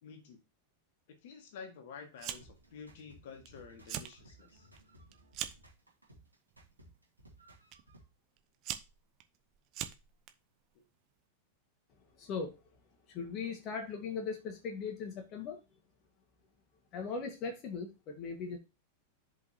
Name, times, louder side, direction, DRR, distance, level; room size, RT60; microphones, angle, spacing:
voice 1, 0.0-0.4 1.2-4.7, left 6 dB, 55° left, 1.8 m, -50 dB
Fire, 2.2-2.7 3.0-3.5 3.8-4.1 4.6-5.7 6.5-6.8 7.7-7.8 8.4-10.3, right 11 dB, 40° right, 0.8 m, -41 dB
sound 1, 2.2-8.0, right 1 dB, 85° right, 2.3 m, -59 dB
voice 2, 12.1-12.6 13.1-15.6 16.9-18.6, left 5 dB, 35° left, 1.7 m, -39 dB
10.5 x 5.4 x 2.9 m
figure-of-eight pair, 90°, 0 cm